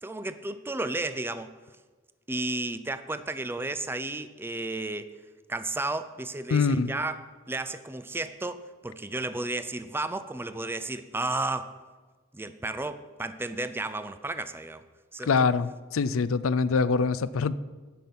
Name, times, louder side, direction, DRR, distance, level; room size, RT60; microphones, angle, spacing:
voice 1, 0.0-1.5 2.3-5.1 5.5-11.8 12.3-14.8 15.1-15.5, right 2 dB, 10° right, 11 dB, 0.4 m, -33 dB
voice 2, 6.5-6.9 15.3-17.6, left 4 dB, 75° left, 16 dB, 0.5 m, -24 dB
16.0 x 6.0 x 5.4 m, 1.3 s
head